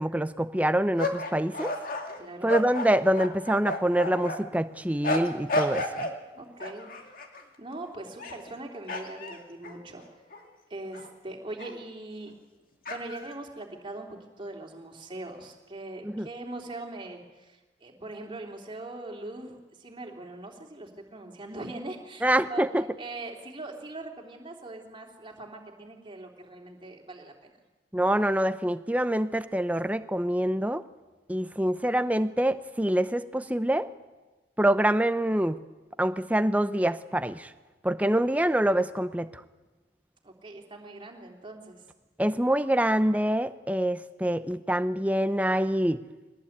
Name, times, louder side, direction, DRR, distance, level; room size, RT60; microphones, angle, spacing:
voice 1, 0.0-1.7 2.4-6.1 16.0-16.3 22.2-22.8 27.9-30.8 31.3-33.9 34.6-35.6 36.0-37.5 37.8-39.3 42.2-46.0, right 1 dB, 10° right, 12 dB, 0.7 m, -25 dB
sound 1, 1.0-4.4 5.0-6.2 6.6-7.4 8.1-8.5 8.9-10.5 10.9-11.1 11.6-11.7 12.9-13.3, left 1 dB, 50° left, 2.3 m, -32 dB
voice 2, 2.2-2.5 6.3-6.9 7.6-10.0 10.7-12.3 12.9-22.7 23.0-27.5 40.2-41.8, right 2 dB, 25° right, 0 dB, 3.1 m, -41 dB
22.5 x 18.5 x 8.7 m, 1.2 s
head